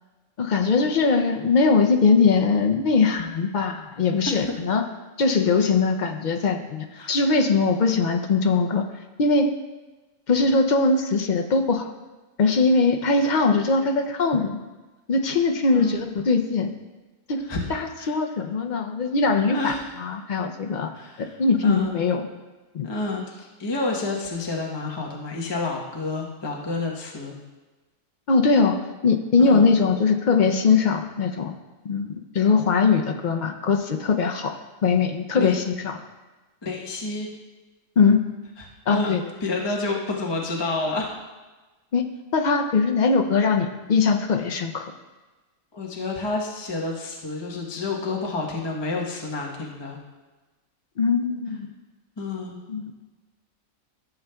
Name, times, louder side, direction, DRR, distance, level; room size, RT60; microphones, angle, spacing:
voice 1, 0.4-4.8 5.2-8.8 9.2-9.5 10.3-11.9 12.4-14.6 15.1-16.7 17.3-19.7 20.0-20.9 21.2-22.3 22.7-22.9 28.3-28.8 29.0-31.5 31.8-34.5 34.8-36.0 38.0-38.2 38.9-39.2 41.9-42.1 42.3-44.8 51.0-51.7 52.7-52.9, left 4 dB, 65° left, 5 dB, 0.4 m, -21 dB
voice 2, 19.5-19.9 20.9-21.3 21.6-22.0 22.8-27.4 29.4-29.6 35.3-35.5 36.6-37.3 38.6-41.1 45.7-50.0 52.2-52.6, left 3 dB, 20° left, -2 dB, 0.9 m, -29 dB
14.0 x 7.0 x 2.3 m, 1.2 s
omnidirectional pair, 1.4 m